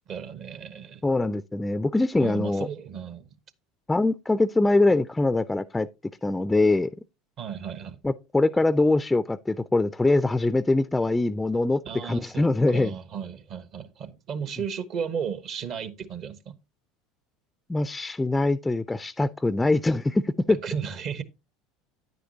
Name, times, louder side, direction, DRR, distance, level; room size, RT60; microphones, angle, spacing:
voice 1, 0.1-1.0 2.2-3.3 7.4-8.0 11.8-16.6 20.6-21.2, right 7 dB, 50° right, 1.0 m, -34 dB
voice 2, 1.0-2.7 3.9-5.9 6.2-6.9 8.0-12.9 17.7-20.6, left 2 dB, 10° left, 0.4 m, -23 dB
9.5 x 9.2 x 2.8 m
hypercardioid pair, 75°, 0 cm